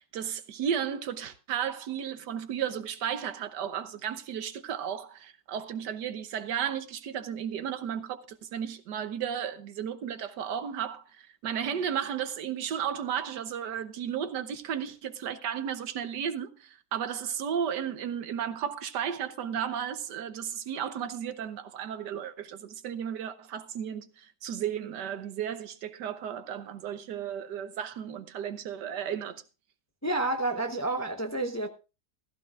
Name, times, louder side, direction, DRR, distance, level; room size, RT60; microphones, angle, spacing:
voice 1, 0.0-29.4, right 8 dB, 90° right, 1.6 m, -34 dB
voice 2, 30.0-31.7, right 2 dB, 15° left, 0.7 m, -29 dB
15.0 x 14.5 x 2.5 m
omnidirectional pair, 1.8 m